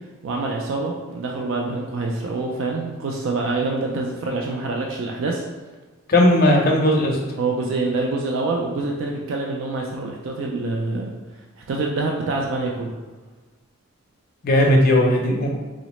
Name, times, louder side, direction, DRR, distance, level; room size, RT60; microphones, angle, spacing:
voice 1, 0.2-5.4 7.4-11.1 11.6-12.9, right 3 dB, 65° right, 0 dB, 0.3 m, -26 dB
voice 2, 6.1-7.2 14.4-15.5, left 1 dB, 45° left, 0 dB, 0.5 m, -17 dB
3.8 x 2.0 x 2.9 m, 1.3 s
head